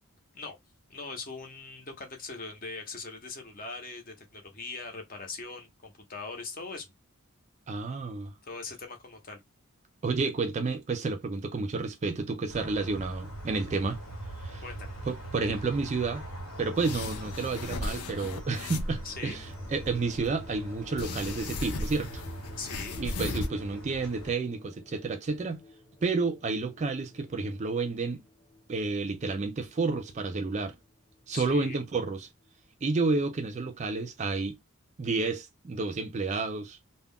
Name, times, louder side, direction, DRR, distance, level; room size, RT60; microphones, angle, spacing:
voice 1, 0.9-6.9 8.4-9.4 14.6-15.0 19.0-19.4 22.6-23.0 31.3-31.8, left 3 dB, 40° left, 0.7 m, -41 dB
voice 2, 7.7-8.3 10.0-14.0 14.4-14.6 15.1-16.3 16.6-22.2 23.0-25.6 26.0-28.2 28.7-30.8 31.3-32.3 32.8-34.6 35.0-36.8, right 3 dB, 30° right, 0.3 m, -30 dB
sound 1, 12.5-24.3, right 1 dB, 75° left, 1.2 m, -42 dB
sound 2, 16.7-19.0 19.5-20.3 21.0-23.5, left 2 dB, 90° left, 0.5 m, -36 dB
sound 3, 18.6-33.5, left 2 dB, 5° left, 0.7 m, -54 dB
2.3 x 2.1 x 3.6 m
head